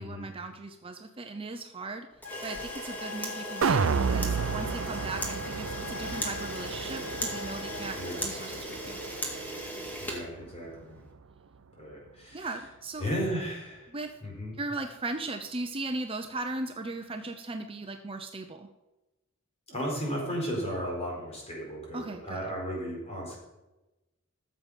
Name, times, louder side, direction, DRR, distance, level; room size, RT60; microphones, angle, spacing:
voice 1, 0.0-2.1 2.4-3.8 4.1-9.0 12.3-13.0 13.9-14.1 14.6-18.7 21.9-22.5, right 2 dB, 25° right, 5 dB, 0.7 m, -38 dB
sound 1, 2.2-8.2, left 7 dB, 90° left, 2.2 m, -43 dB
Camera, 2.2-10.9, right 1 dB, 10° left, 2.1 m, -37 dB
sound 2, 3.6-9.8 10.2-10.3, right 5 dB, 75° right, 0.5 m, -32 dB
voice 2, 8.0-8.3 10.0-11.0 11.8-12.5 13.0-13.9 14.2-14.5 19.7-23.4, equal, 30° left, -2 dB, 4.4 m, -35 dB
13.5 x 7.4 x 5.4 m, 1.0 s
head